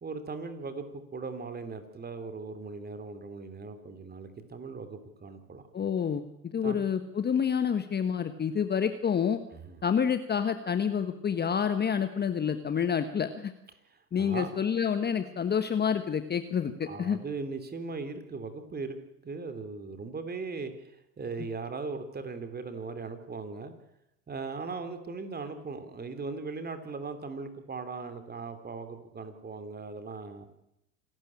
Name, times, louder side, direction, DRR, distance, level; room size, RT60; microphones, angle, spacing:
voice 1, 0.0-5.6 6.6-6.9 9.5-9.8 13.9-14.5 16.8-19.0 19.2-23.7 24.3-30.5, right 4 dB, 20° right, 9 dB, 3.1 m, -39 dB
voice 2, 5.7-6.2 6.5-9.4 9.8-13.5 14.1-17.2, left 7 dB, 20° left, 10 dB, 1.3 m, -28 dB
26.5 x 12.5 x 8.8 m, 0.85 s
hypercardioid pair, 95°, 49 cm